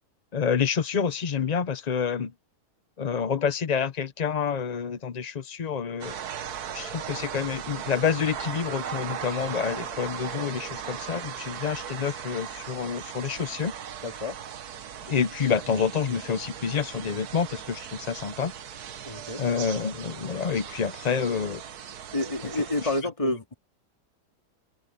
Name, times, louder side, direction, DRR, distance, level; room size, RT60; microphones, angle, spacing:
voice 1, 0.3-2.3 3.0-6.2 6.7-13.7 15.1-18.5 19.4-21.6 22.8-22.9 23.2-23.4, left 6 dB, 55° left, 0.4 m, -28 dB
sound 1, 6.0-23.0, right 8 dB, 75° right, 1.6 m, -38 dB
voice 2, 14.0-14.4 19.0-19.4 22.1-23.5, left 2 dB, 20° left, 2.2 m, -29 dB
open air
omnidirectional pair, 1.7 m